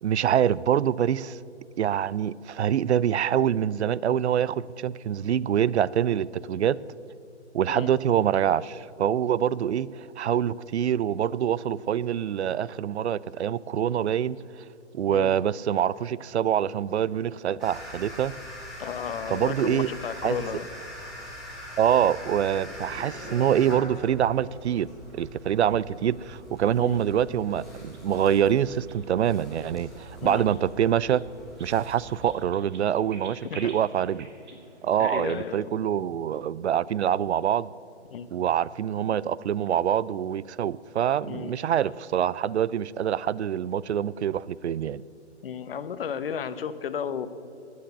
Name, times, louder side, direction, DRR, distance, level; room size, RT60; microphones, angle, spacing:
voice 1, 0.0-1.4 1.8-6.8 7.5-14.4 14.9-18.3 19.3-19.9 20.2-20.4 21.8-24.9 25.1-31.2 31.6-34.3 34.8-37.7 38.3-45.0, right 9 dB, 70° right, 21 dB, 0.5 m, -25 dB
sound 1, 17.6-32.4, equal, ahead, 2.7 m, -43 dB
voice 2, 18.8-20.7 26.8-27.0 30.2-30.4 33.5-33.7 35.0-35.8 38.1-38.3 41.3-41.5 45.4-47.3, left 7 dB, 55° left, 12 dB, 0.9 m, -33 dB
sound 2, 26.5-35.5, right 4 dB, 40° right, 2.2 m, -51 dB
15.5 x 9.5 x 6.7 m, 2.6 s
hypercardioid pair, 155°, 35 cm